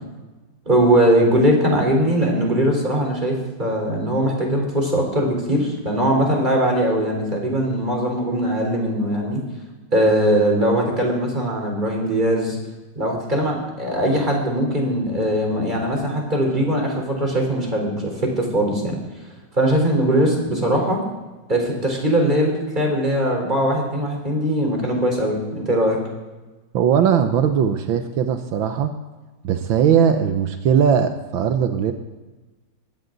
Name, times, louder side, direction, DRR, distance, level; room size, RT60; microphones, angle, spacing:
voice 1, 0.7-9.4 9.9-12.6 13.0-19.0 19.5-21.0 21.5-26.0, right 1 dB, 25° right, 0 dB, 4.3 m, -20 dB
voice 2, 26.7-28.9 29.4-31.9, right 8 dB, 85° right, 7 dB, 1.7 m, -19 dB
21.5 x 16.0 x 4.0 m, 1.2 s
omnidirectional pair, 2.1 m